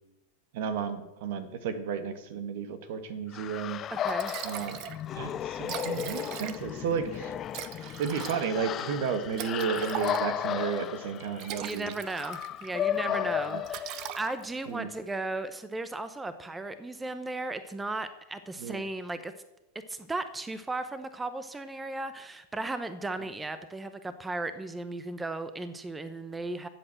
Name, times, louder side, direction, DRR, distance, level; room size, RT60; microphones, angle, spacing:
voice 1, 0.5-3.8 4.4-4.8 5.1-7.3 8.0-11.9 13.0-13.6 14.7-14.9 18.6-18.8, right 6 dB, 65° right, 10 dB, 1.6 m, -33 dB
sound 1, 3.3-14.4, left 10 dB, 35° left, 0.4 m, -34 dB
Liquid, 3.7-3.8 4.1-5.0 5.3-5.4 5.6-6.8 7.5-10.5 11.2-12.7 13.0-13.3 13.6-14.7, right 11 dB, 45° right, 0.9 m, -39 dB
voice 2, 3.9-4.3 11.6-19.3 19.7-26.7, right 2 dB, 10° right, 11 dB, 0.9 m, -36 dB
13.0 x 7.9 x 7.7 m, 1.0 s
hypercardioid pair, 110°, 0 cm